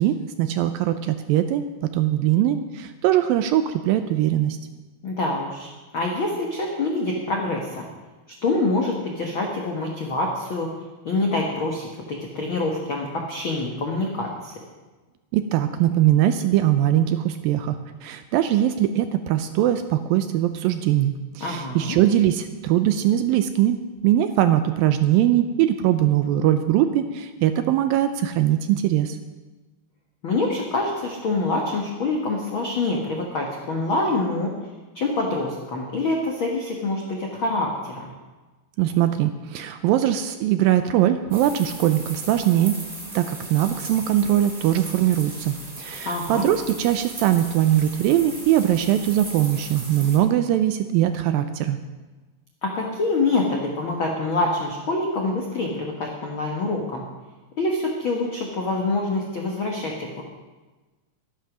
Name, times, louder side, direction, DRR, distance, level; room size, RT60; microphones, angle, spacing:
voice 1, 0.0-4.6 15.3-23.8 24.0-29.2 38.8-42.8 43.1-51.8, right 12 dB, 80° right, 9 dB, 2.2 m, -21 dB
voice 2, 5.0-5.7 5.9-7.8 8.4-10.7 11.0-14.5 21.4-22.0 30.2-34.5 34.9-38.1 46.0-46.5 52.6-57.0 57.6-60.2, left 2 dB, 70° left, 0 dB, 1.2 m, -26 dB
sound 1, 41.3-50.2, right 1 dB, 15° right, 2.5 m, -38 dB
12.5 x 11.5 x 6.1 m, 1.2 s
omnidirectional pair, 4.5 m